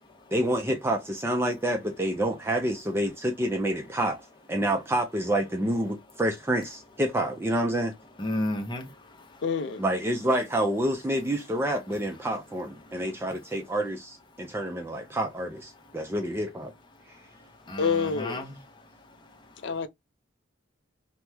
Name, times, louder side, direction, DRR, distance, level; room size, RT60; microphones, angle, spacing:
voice 1, 0.3-4.2 4.5-7.9 9.8-16.7, right 1 dB, 10° right, 0.3 m, -28 dB
voice 2, 8.2-9.4 12.8-13.1 15.9-16.0 17.1-19.7, left 1 dB, 25° left, 0.7 m, -35 dB
voice 3, 9.4-9.8 17.8-18.4 19.6-19.9, left 5 dB, 60° left, 0.4 m, -27 dB
2.9 x 2.0 x 3.3 m
head